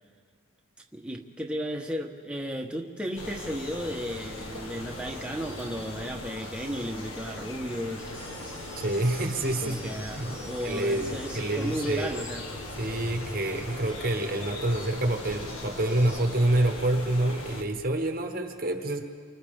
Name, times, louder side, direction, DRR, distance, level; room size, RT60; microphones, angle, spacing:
voice 1, 0.9-8.2 9.6-12.4, equal, 5° right, 1 dB, 1.2 m, -34 dB
sound 1, 3.2-17.6, left 1 dB, 90° left, 1.9 m, -39 dB
sound 2, 8.1-16.2, left 1 dB, 20° left, 2.4 m, -49 dB
voice 2, 8.8-10.3 10.6-12.1 12.8-19.0, right 1 dB, 40° right, 4 dB, 1.2 m, -27 dB
29.5 x 25.0 x 3.7 m, 2.1 s
head